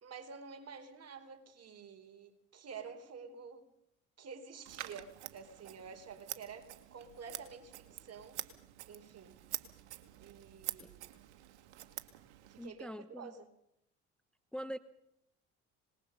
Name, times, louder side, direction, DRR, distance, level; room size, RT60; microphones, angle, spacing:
voice 1, 0.0-3.7 4.2-8.4 8.9-9.4 10.2-11.1 12.4-13.5, right 6 dB, 45° right, 6 dB, 4.4 m, -50 dB
Scissors, 4.7-12.7, right 15 dB, 85° right, 1.9 m, -47 dB
voice 2, 12.6-13.3 14.5-14.8, equal, 5° left, 13 dB, 1.1 m, -43 dB
25.5 x 21.0 x 5.5 m, 0.78 s
supercardioid pair, 70°, 34 cm